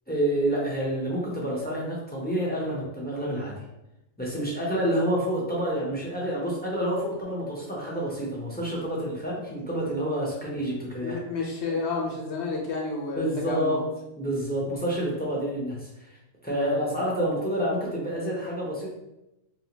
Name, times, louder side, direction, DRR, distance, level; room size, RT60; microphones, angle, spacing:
voice 1, 0.1-3.5 4.2-11.2 13.2-13.8 14.2-16.1 16.4-18.9, right 1 dB, 10° left, -5 dB, 0.5 m, -28 dB
voice 2, 11.0-13.8 16.6-16.8, left 3 dB, 70° left, -2 dB, 0.9 m, -31 dB
2.7 x 2.4 x 2.9 m, 0.92 s
omnidirectional pair, 1.2 m